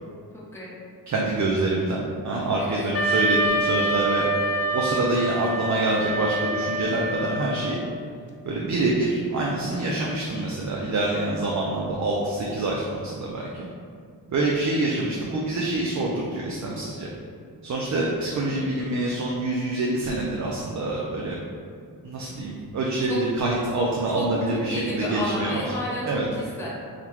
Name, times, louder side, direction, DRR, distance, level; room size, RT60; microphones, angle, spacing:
voice 1, 0.3-0.8 2.6-2.9 23.0-23.2 24.1-24.2 24.5-26.7, left 1 dB, 5° left, -7 dB, 0.8 m, -32 dB
voice 2, 1.1-4.2 4.7-7.8 8.4-13.7 14.3-17.1 17.6-21.4 22.0-25.6 26.1-26.2, right 2 dB, 45° right, -3 dB, 0.5 m, -26 dB
Wind instrument woodwind instrument, 2.9-7.8, right 1 dB, 40° left, 0.5 m, -26 dB
3.7 x 2.2 x 4.4 m, 2.3 s
wide cardioid pair, 100°, 40 cm